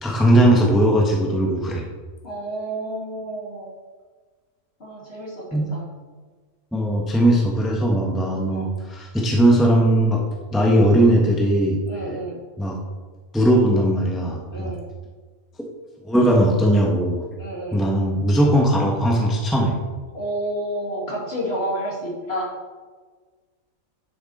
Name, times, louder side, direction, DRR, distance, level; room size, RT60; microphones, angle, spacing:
voice 1, 0.0-1.9 5.5-5.7 6.7-10.2 10.5-11.8 12.6-12.8 13.3-14.7 16.0-17.3 17.7-19.8, right 1 dB, ahead, -1 dB, 1.0 m, -19 dB
voice 2, 2.2-3.7 4.8-5.4 5.7-5.9 8.5-8.7 11.9-12.4 14.5-14.8 17.4-17.8 20.1-22.5, right 1 dB, 45° left, -4 dB, 2.6 m, -30 dB
10.5 x 6.1 x 4.2 m, 1.4 s
omnidirectional pair, 1.5 m